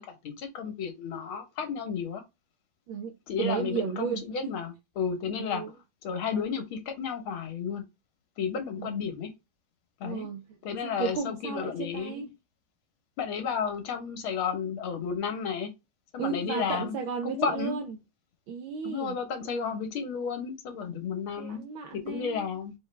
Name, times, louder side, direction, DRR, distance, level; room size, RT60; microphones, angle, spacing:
voice 1, 0.0-2.2 3.3-5.6 6.0-7.8 8.4-9.3 10.0-10.3 10.6-12.3 13.2-15.7 16.1-17.0 17.2-17.8 18.8-21.6 21.9-22.7, left 6 dB, 75° left, 1.9 m, -32 dB
voice 2, 2.9-4.6 5.4-5.7 8.8-9.0 10.0-10.5 10.8-12.3 16.2-18.0 18.5-19.2 21.4-22.5, right 6 dB, 70° right, 1.4 m, -34 dB
4.7 x 3.1 x 3.2 m
omnidirectional pair, 2.4 m